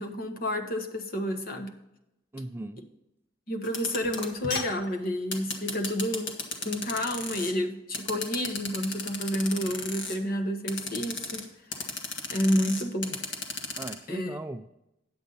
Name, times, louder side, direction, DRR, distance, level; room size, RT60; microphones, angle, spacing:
voice 1, 0.0-1.7 3.5-6.3 6.6-11.4 12.3-13.2 14.1-14.4, equal, 50° left, 5 dB, 1.2 m, -30 dB
voice 2, 2.3-2.8 13.8-14.7, right 1 dB, 10° right, 9 dB, 0.3 m, -37 dB
sound 1, 3.6-7.5 7.9-10.2 10.7-11.4 11.7-13.9, left 3 dB, 70° left, 1.6 m, -34 dB
9.7 x 8.1 x 4.0 m, 0.88 s
head